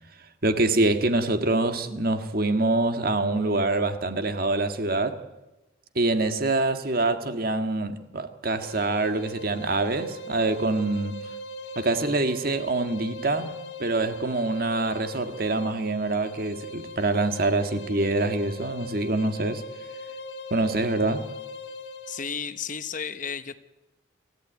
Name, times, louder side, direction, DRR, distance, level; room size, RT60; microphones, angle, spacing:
voice 1, 0.4-5.2 5.9-11.2 11.7-19.6 20.5-21.3, right 2 dB, 50° right, 1.8 m, -25 dB
sound 1, 8.6-22.3, equal, 65° left, 2.2 m, -40 dB
voice 2, 22.1-23.6, left 6 dB, 45° left, 1.0 m, -33 dB
27.0 x 14.5 x 9.3 m
head